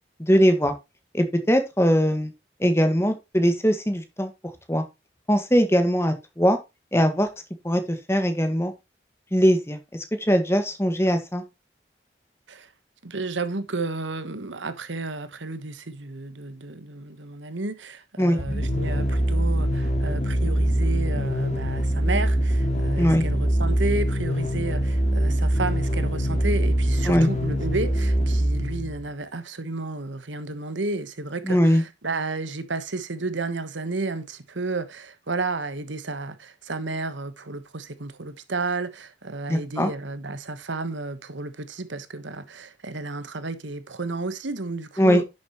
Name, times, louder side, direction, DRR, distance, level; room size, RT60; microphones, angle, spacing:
voice 1, 0.2-0.7 1.1-2.3 2.6-4.3 4.7-4.8 5.3-6.6 6.9-7.3 7.6-8.7 9.3-11.4 18.2-18.4 23.0-23.2 27.0-27.3 31.4-31.8 39.5-39.9 45.0-45.2, equal, 15° left, 1.7 m, -21 dB
voice 2, 13.0-45.3, right 3 dB, 80° right, 1.3 m, -32 dB
sound 1, 18.4-29.1, equal, 35° left, 2.4 m, -23 dB
10.5 x 7.2 x 3.1 m
head